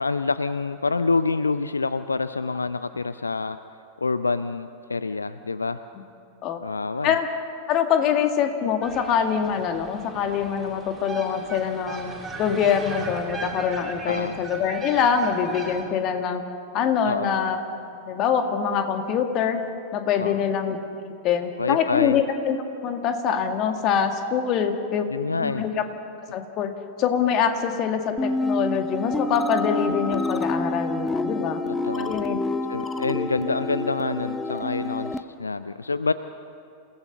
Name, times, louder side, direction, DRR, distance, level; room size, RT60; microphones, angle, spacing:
voice 1, 0.0-3.6 4.0-5.8 6.6-7.1 14.1-14.4 17.0-17.4 20.2-20.5 21.6-22.2 25.1-25.6 31.8-32.2 32.7-36.1, left 4 dB, 80° left, 13 dB, 0.5 m, -27 dB
voice 2, 7.7-12.1 12.4-16.4 16.7-17.6 18.0-19.6 19.9-20.8 21.1-22.6 22.8-25.0 25.4-25.7 26.3-26.7 27.0-31.6 32.0-32.4, left 7 dB, 35° left, 5 dB, 2.0 m, -24 dB
sound 1, 8.8-15.8, right 3 dB, 15° right, 3.7 m, -38 dB
sound 2, 28.2-35.2, left 2 dB, 10° left, 0.9 m, -28 dB
27.5 x 17.0 x 6.8 m, 2.6 s
figure-of-eight pair, 90°, 0 cm